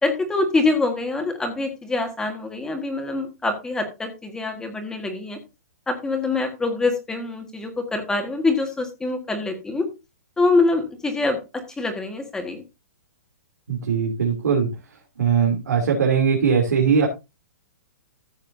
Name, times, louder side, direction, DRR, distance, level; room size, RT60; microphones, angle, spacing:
voice 1, 0.0-5.4 5.9-9.9 10.4-12.6, left 3 dB, 5° left, 5 dB, 1.6 m, -24 dB
voice 2, 13.7-14.7 15.2-17.1, right 6 dB, 85° right, -1 dB, 3.0 m, -20 dB
14.5 x 7.4 x 2.7 m, 0.25 s
hypercardioid pair, 150°, 9 cm